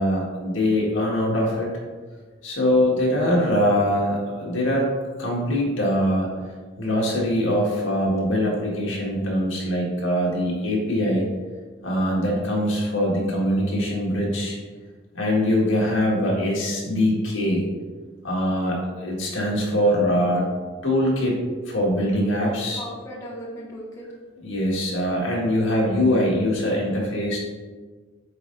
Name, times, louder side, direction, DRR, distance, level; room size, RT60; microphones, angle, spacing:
voice 1, 0.0-1.7 2.4-4.9 5.2-6.3 6.8-11.2 11.8-14.6 15.1-17.6 18.2-20.4 20.8-21.4 21.6-22.8 24.4-27.4, equal, 70° left, -3 dB, 1.8 m, -22 dB
voice 2, 3.2-3.7 22.0-22.1 22.4-24.1, equal, 15° left, -6 dB, 1.1 m, -38 dB
8.6 x 3.8 x 3.9 m, 1.4 s
head